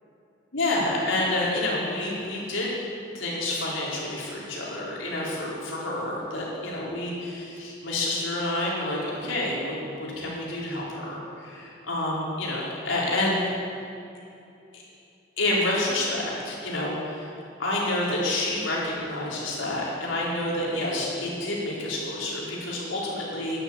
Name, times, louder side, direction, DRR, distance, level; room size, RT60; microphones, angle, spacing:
voice 1, 0.5-2.7 3.1-13.4 14.7-14.8 15.4-17.3 17.6-23.6, left 1 dB, 85° left, -5 dB, 4.3 m, -28 dB
11.5 x 11.0 x 8.8 m, 2.7 s
head